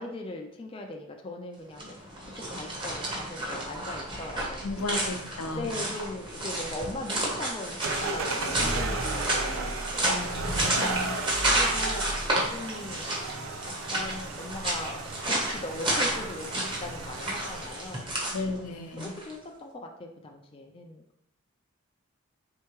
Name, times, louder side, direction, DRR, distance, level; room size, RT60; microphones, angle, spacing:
voice 1, 0.0-2.1 2.3-5.1 5.6-11.0 11.5-12.2 12.5-13.2 13.9-18.2 18.5-21.2, left 2 dB, 25° left, 2 dB, 0.3 m, -40 dB
sound 1, 1.7-19.3, right 1 dB, 20° right, 0.9 m, -31 dB
voice 2, 4.6-5.9 10.1-11.2 18.3-19.1, left 3 dB, 85° left, 5 dB, 0.6 m, -34 dB
sound 2, 7.8-18.0, right 2 dB, 80° right, 0.6 m, -34 dB
4.5 x 3.3 x 3.0 m, 0.76 s
head